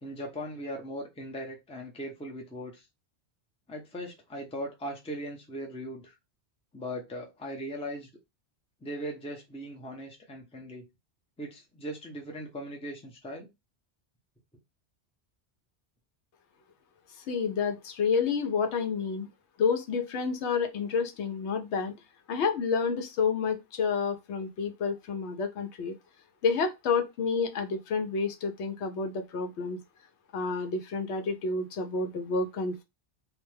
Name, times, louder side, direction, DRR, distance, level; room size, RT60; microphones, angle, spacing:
voice 1, 0.0-2.8 3.7-6.1 6.7-8.1 8.8-10.8 11.4-13.5, equal, 10° left, 0.5 m, -39 dB
voice 2, 17.2-19.3 19.6-21.9 22.3-25.9 26.4-29.8 30.3-32.8, left 5 dB, 80° left, 0.9 m, -29 dB
2.3 x 2.1 x 3.1 m
omnidirectional pair, 1.2 m